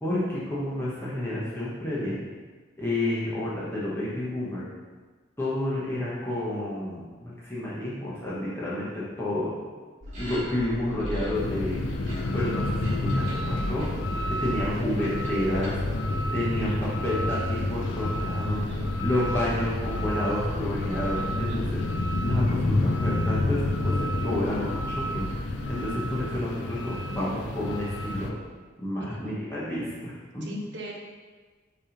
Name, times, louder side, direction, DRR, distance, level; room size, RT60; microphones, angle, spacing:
voice 1, 0.0-2.2 2.8-4.6 5.4-9.5 10.2-11.9 12.3-13.8 14.4-15.8 16.3-16.7 17.0-18.6 19.0-21.7 22.2-25.3 25.7-28.3 28.8-30.6, left 1 dB, 10° left, -8 dB, 1.0 m, -30 dB
sound 1, 10.0-26.3, equal, 40° right, 1.6 m, -38 dB
sound 2, 11.3-28.3, left 2 dB, 75° left, 0.5 m, -29 dB
voice 2, 16.4-16.7 18.4-18.9 21.2-21.7 29.0-29.3 30.4-31.0, right 3 dB, 65° right, -2 dB, 1.0 m, -41 dB
5.3 x 3.5 x 5.0 m, 1.4 s
head